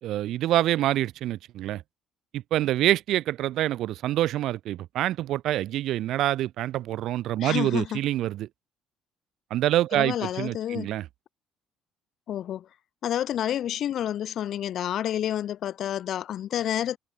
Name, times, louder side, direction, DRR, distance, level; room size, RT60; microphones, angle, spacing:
voice 1, 0.0-1.8 2.3-8.5 9.5-11.1, right 14 dB, 70° right, 4.9 m, -26 dB
voice 2, 7.4-8.0 9.9-10.9 12.3-12.7 13.0-17.0, left 11 dB, 60° left, 3.1 m, -29 dB
cardioid pair, 110°, 0 cm